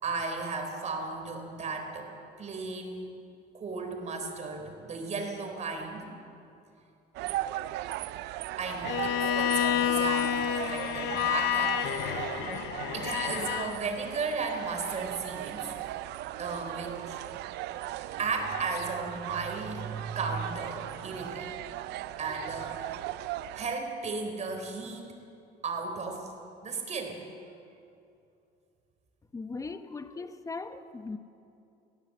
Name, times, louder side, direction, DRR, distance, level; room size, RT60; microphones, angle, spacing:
voice 1, 0.0-2.1 2.4-3.1 3.5-6.1 8.6-12.3 12.9-15.7 16.4-17.2 18.2-21.5 22.2-22.8 23.5-25.1 25.6-26.3 26.6-27.2, right 4 dB, 45° right, 4 dB, 4.0 m, -35 dB
sound 1, 7.1-23.7, right 14 dB, 85° right, 0.6 m, -38 dB
Bowed string instrument, 8.8-13.8, left 10 dB, 90° left, 0.9 m, -29 dB
voice 2, 29.3-31.2, left 3 dB, 20° left, 9 dB, 1.0 m, -39 dB
20.0 x 17.0 x 7.9 m, 2.6 s
cardioid pair, 110°, 17 cm